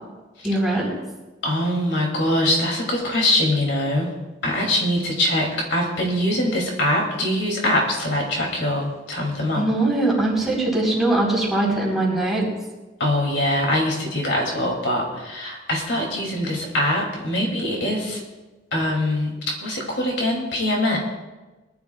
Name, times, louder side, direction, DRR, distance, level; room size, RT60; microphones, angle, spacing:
voice 1, 0.4-0.9 9.6-12.5, right 2 dB, ahead, -5 dB, 4.2 m, -21 dB
voice 2, 1.4-4.1 4.4-9.6 13.0-18.2 18.7-19.3 19.6-21.0, left 1 dB, 70° left, -1 dB, 2.9 m, -23 dB
22.0 x 12.0 x 2.4 m, 1.2 s
head